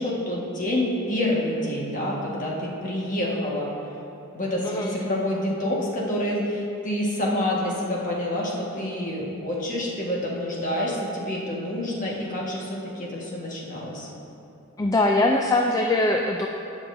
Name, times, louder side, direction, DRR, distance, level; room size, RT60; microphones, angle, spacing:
voice 1, 0.0-3.7 4.3-14.1, left 1 dB, 35° left, -4 dB, 1.5 m, -27 dB
voice 2, 4.6-5.0 14.8-16.5, left 2 dB, 15° left, 1 dB, 0.3 m, -22 dB
17.5 x 6.2 x 2.7 m, 2.8 s
head